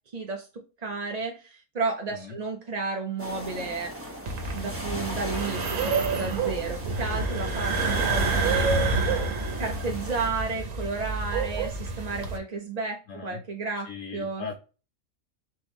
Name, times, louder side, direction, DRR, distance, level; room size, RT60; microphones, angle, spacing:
voice 1, 0.1-0.5 0.8-4.1 4.5-9.0 9.6-14.5, right 4 dB, 45° right, 0.5 m, -32 dB
sound 1, 3.2-10.3, right 1 dB, 10° right, 1.1 m, -38 dB
sound 2, 4.3-12.4, right 2 dB, 65° right, 1.3 m, -29 dB
sound 3, 5.8-6.6 7.9-9.3 11.3-11.7, right 7 dB, 85° right, 1.2 m, -29 dB
voice 2, 13.1-13.4 13.8-14.5, left 5 dB, 70° left, 1.1 m, -38 dB
4.4 x 3.5 x 3.1 m
omnidirectional pair, 1.5 m